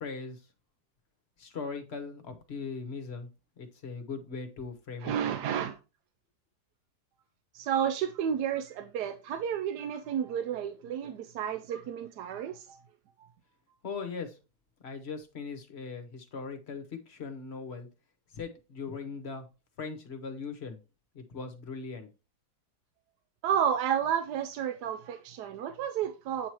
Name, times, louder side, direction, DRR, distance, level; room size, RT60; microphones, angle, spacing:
voice 1, 0.0-0.4 1.4-3.3 3.6-5.1 13.8-14.4 14.8-17.9 18.3-19.5 19.8-20.8 21.1-22.1, left 4 dB, 45° left, 1.1 m, -39 dB
voice 2, 5.0-5.8 7.5-12.8 23.4-26.5, right 9 dB, 90° right, 1.2 m, -31 dB
8.4 x 2.9 x 4.5 m
omnidirectional pair, 1.7 m